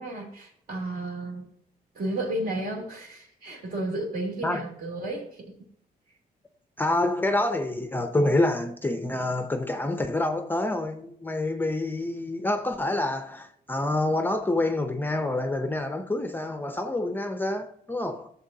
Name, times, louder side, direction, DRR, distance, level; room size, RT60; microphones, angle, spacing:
voice 1, 0.0-1.5 1.9-5.5, right 1 dB, 60° right, 2.9 m, -33 dB
voice 2, 6.8-18.3, left 2 dB, 10° left, 0.6 m, -27 dB
14.0 x 7.0 x 2.7 m
cardioid pair, 135°, 16 cm